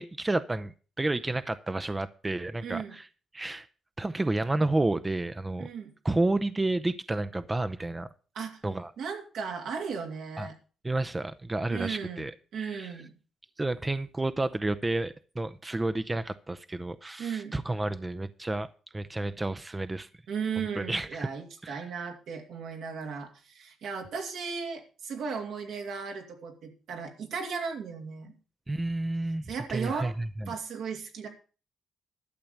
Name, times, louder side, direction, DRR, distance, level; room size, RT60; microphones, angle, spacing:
voice 1, 0.0-3.1 3.3-3.7 4.0-5.7 6.0-8.1 8.6-8.9 10.4-10.5 10.8-12.9 13.6-18.7 18.9-20.1 20.6-21.3 21.6-21.8 28.7-30.5, right 2 dB, 20° right, 12 dB, 0.6 m, -31 dB
voice 2, 2.6-2.9 5.6-5.9 8.3-8.6 9.0-10.5 11.7-12.3 12.5-13.1 17.2-17.5 20.3-28.3 29.5-30.2 30.5-31.3, right 6 dB, 80° right, 3 dB, 2.5 m, -36 dB
12.0 x 6.8 x 7.2 m, 0.37 s
cardioid pair, 80°, 0 cm